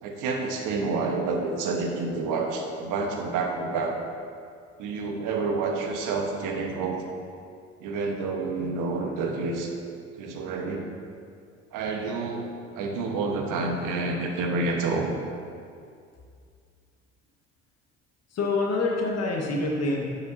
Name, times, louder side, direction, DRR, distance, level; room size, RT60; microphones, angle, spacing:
voice 1, 0.0-4.0 4.8-7.0 7.8-9.7 10.2-10.9 11.7-15.1, right 3 dB, 60° right, 2 dB, 1.3 m, -29 dB
voice 2, 18.3-20.0, left 2 dB, 45° left, -1 dB, 1.6 m, -26 dB
12.0 x 7.0 x 2.8 m, 2.3 s
figure-of-eight pair, 55°, 36 cm